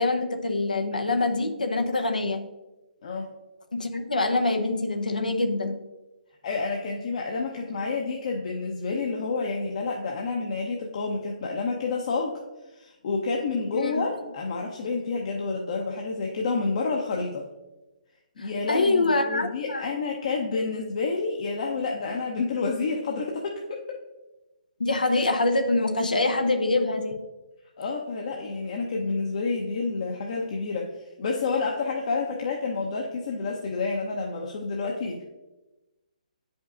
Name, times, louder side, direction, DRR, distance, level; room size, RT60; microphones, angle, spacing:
voice 1, 0.0-2.5 3.7-5.8 13.7-13.9 18.4-19.8 24.8-27.2, left 2 dB, 90° left, 5 dB, 0.7 m, -25 dB
voice 2, 6.4-12.4 12.7-17.5 18.4-24.0 27.8-35.2, left 4 dB, 50° left, 0 dB, 0.8 m, -29 dB
8.8 x 5.3 x 2.5 m, 1.1 s
figure-of-eight pair, 140°, 4 cm